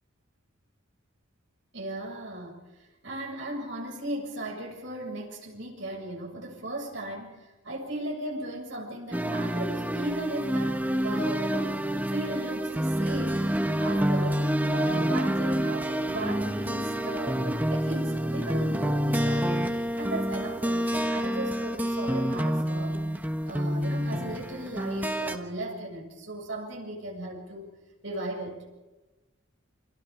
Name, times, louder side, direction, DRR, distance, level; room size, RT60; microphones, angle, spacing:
voice 1, 1.7-2.6 3.0-13.5 13.8-19.7 20.0-22.9 23.5-27.7 28.0-28.6, right 1 dB, 60° right, 0 dB, 7.3 m, -36 dB
sound 1, 9.1-25.4, equal, 10° right, 1.2 m, -28 dB
29.0 x 26.0 x 5.1 m, 1.1 s
head